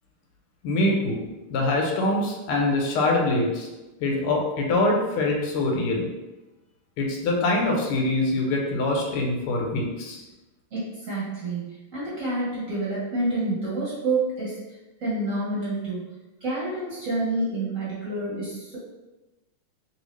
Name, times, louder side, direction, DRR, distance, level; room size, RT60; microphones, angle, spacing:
voice 1, 0.6-1.2 1.5-3.7 4.0-6.1 7.0-10.2, left 2 dB, 90° left, 0 dB, 1.6 m, -24 dB
voice 2, 10.7-14.6 15.0-16.0 16.4-18.8, right 2 dB, 45° right, -9 dB, 1.2 m, -28 dB
3.3 x 2.7 x 3.1 m, 1.1 s
omnidirectional pair, 2.4 m